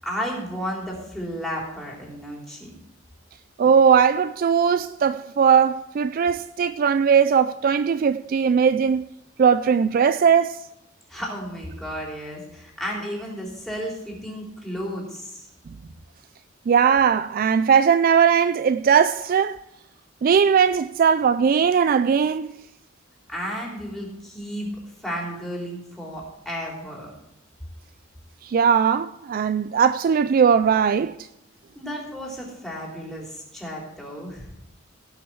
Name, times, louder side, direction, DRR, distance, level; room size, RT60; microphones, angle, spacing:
voice 1, 0.0-2.7 11.1-15.5 23.3-24.7 25.0-27.1 31.7-34.5, equal, ahead, 3.3 m, -33 dB
voice 2, 3.6-9.0 9.4-10.6 16.7-19.6 20.2-22.5 28.4-31.2, right 7 dB, 45° right, 0.3 m, -19 dB
17.5 x 6.0 x 4.7 m
head